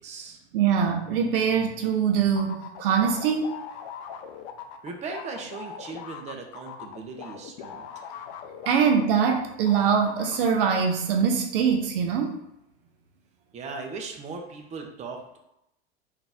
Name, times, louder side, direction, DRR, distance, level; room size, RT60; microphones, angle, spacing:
voice 1, 0.0-0.4 4.8-7.9 13.5-15.4, right 4 dB, 20° right, 2 dB, 0.6 m, -38 dB
voice 2, 0.5-3.6 8.7-12.4, right 7 dB, 55° right, 4 dB, 0.6 m, -23 dB
sound 1, 2.4-9.4 9.7-10.6, left 8 dB, 45° left, 0.5 m, -40 dB
3.8 x 2.6 x 3.6 m, 0.83 s
figure-of-eight pair, 90°, 34 cm